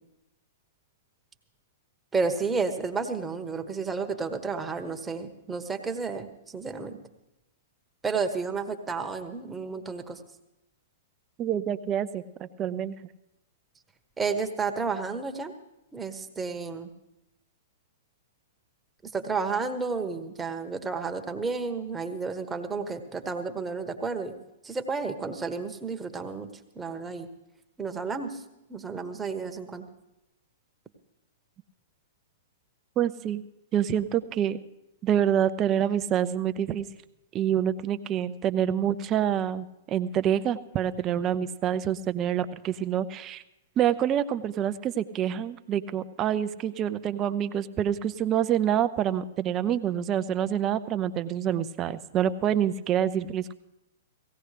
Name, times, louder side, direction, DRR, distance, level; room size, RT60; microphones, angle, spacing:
voice 1, 2.1-7.0 8.0-10.2 14.2-15.5 15.9-16.9 19.0-24.3 24.6-26.5 26.7-27.3 27.8-28.4 28.7-29.8, right 4 dB, 15° right, 6 dB, 1.2 m, -31 dB
voice 2, 11.4-13.0 33.0-33.4 33.7-34.6 35.0-36.9 37.3-43.4 43.8-53.5, right 10 dB, 30° right, 12 dB, 0.6 m, -27 dB
17.5 x 16.0 x 3.4 m, 0.91 s
figure-of-eight pair, 110°, 0 cm